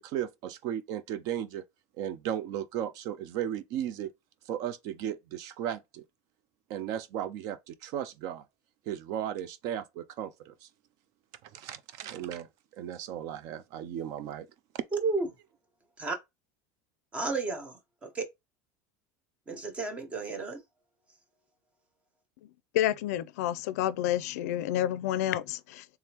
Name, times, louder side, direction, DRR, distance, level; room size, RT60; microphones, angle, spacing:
voice 1, 0.0-1.6 2.0-4.1 4.5-6.0 6.7-8.4 8.9-10.7 11.4-14.5, right 10 dB, 45° right, 0.4 m, -35 dB
voice 2, 14.9-15.3 16.0-16.2 17.1-17.7 18.2-18.3 19.5-20.6, right 3 dB, 15° right, 0.7 m, -31 dB
voice 3, 22.7-25.8, left 12 dB, 85° left, 0.4 m, -29 dB
3.4 x 3.3 x 2.9 m
cardioid pair, 170°, 8 cm